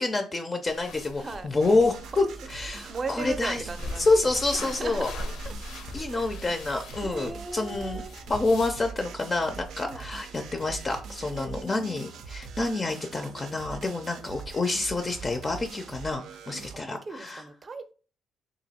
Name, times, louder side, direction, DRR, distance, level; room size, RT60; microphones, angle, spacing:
voice 1, 0.0-3.7 4.0-5.1 5.9-8.0 8.3-17.4, left 2 dB, 30° left, 0.4 m, -28 dB
sound 1, 0.7-8.7, left 2 dB, 90° left, 0.6 m, -41 dB
voice 2, 1.1-1.5 2.7-4.1 4.5-5.1 5.4-5.5 6.1-6.4 7.0-8.1 9.8-10.1 11.4-12.1 16.7-17.9, right 3 dB, 35° right, 0.6 m, -38 dB
sound 2, 1.6-16.8, right 6 dB, 80° right, 0.5 m, -42 dB
2.9 x 2.6 x 4.1 m
cardioid pair, 90°, 0 cm